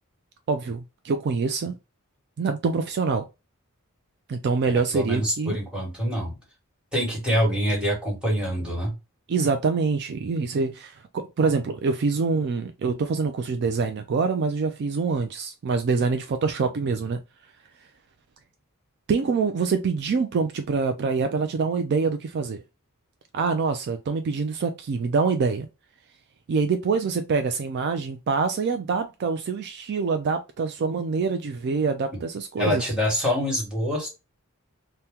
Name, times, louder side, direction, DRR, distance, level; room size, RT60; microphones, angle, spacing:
voice 1, 0.5-1.8 2.4-3.3 4.3-5.6 9.3-17.2 19.1-22.6 23.3-25.7 26.5-32.9, right 4 dB, 50° right, 0.3 m, -25 dB
voice 2, 4.9-6.4 6.9-8.9 32.6-34.1, equal, 5° right, 1.4 m, -25 dB
2.8 x 2.1 x 3.5 m
head